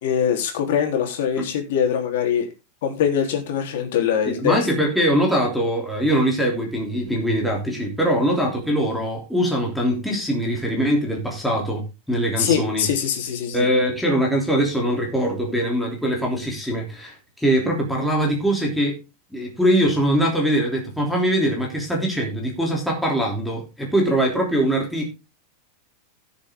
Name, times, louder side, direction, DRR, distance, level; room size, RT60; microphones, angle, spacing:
voice 1, 0.0-2.5 2.8-4.7 12.4-13.7, left 8 dB, 60° left, 3 dB, 3.5 m, -23 dB
voice 2, 4.3-12.9 13.5-19.0 19.3-25.1, equal, ahead, -2 dB, 3.2 m, -22 dB
16.5 x 7.2 x 3.7 m, 0.27 s
supercardioid pair, 175°, 0 cm